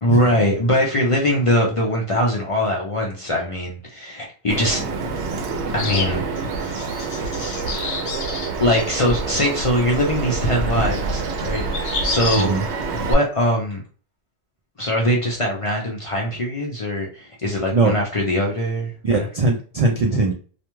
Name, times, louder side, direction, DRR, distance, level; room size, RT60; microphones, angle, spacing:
voice 1, 0.0-4.8 5.7-6.2 7.7-7.9 8.6-12.5 12.9-13.8 14.8-18.9 19.2-19.3, left 1 dB, 40° left, -1 dB, 0.5 m, -22 dB
Bird vocalization bird call bird song, 4.5-13.1, right 4 dB, 80° right, 0.9 m, -27 dB
sound 1, 5.8-8.5 11.5-12.4, left 4 dB, 75° left, 0.9 m, -29 dB
voice 2, 19.0-20.3, right 3 dB, 60° right, 1 dB, 0.4 m, -20 dB
2.4 x 2.2 x 3.0 m, 0.39 s
omnidirectional pair, 1.1 m